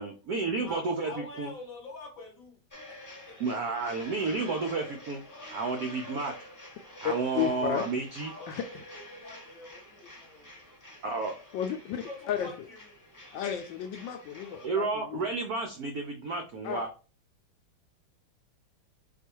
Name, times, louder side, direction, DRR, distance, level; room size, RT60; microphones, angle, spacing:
voice 1, 0.0-1.5 3.4-5.2 5.5-6.3 7.0-8.3 11.0-11.3 14.6-16.9, right 3 dB, 80° right, 0.8 m, -31 dB
voice 2, 0.6-2.6 2.9-3.9 7.2-7.6 8.2-10.5 12.0-12.9, left 2 dB, 50° left, 1.3 m, -46 dB
sound 1, 2.7-14.7, left 1 dB, 10° left, 1.1 m, -48 dB
voice 3, 7.0-7.8 8.5-8.6 11.5-12.5 13.3-15.2 16.6-16.8, left 9 dB, 75° left, 1.1 m, -33 dB
4.6 x 2.5 x 4.5 m
omnidirectional pair, 2.4 m